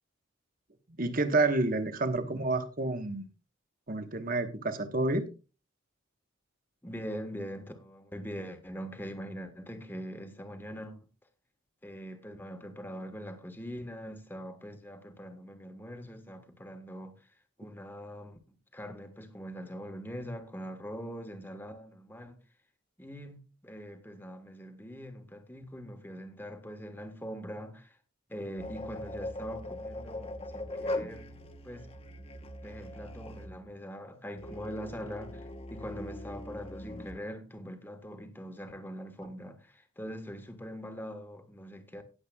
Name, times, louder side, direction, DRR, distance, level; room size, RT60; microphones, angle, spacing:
voice 1, 1.0-3.2 3.9-5.3, right 2 dB, 45° right, 1.2 m, -29 dB
voice 2, 6.8-11.1 11.8-17.3 17.6-18.4 18.7-22.4 23.0-28.0 28.3-31.3 31.6-31.9 32.6-42.0, equal, 10° left, 1.3 m, -42 dB
sound 1, 28.6-33.7 34.4-37.1, left 1 dB, 30° left, 0.9 m, -40 dB
18.0 x 7.5 x 2.3 m
head